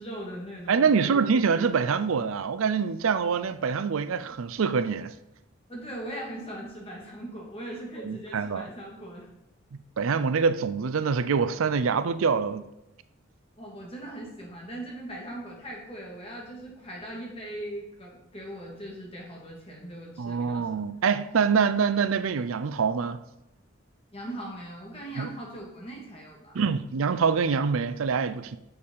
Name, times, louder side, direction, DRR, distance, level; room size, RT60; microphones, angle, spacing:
voice 1, 0.0-1.3 5.7-9.3 13.6-20.7 24.1-26.6, right 1 dB, 30° left, 2.4 m, -40 dB
voice 2, 0.7-5.1 8.0-8.6 9.7-12.7 20.2-23.2 25.2-25.3 26.5-28.6, right 5 dB, 80° right, 0.5 m, -25 dB
6.8 x 6.7 x 5.5 m
head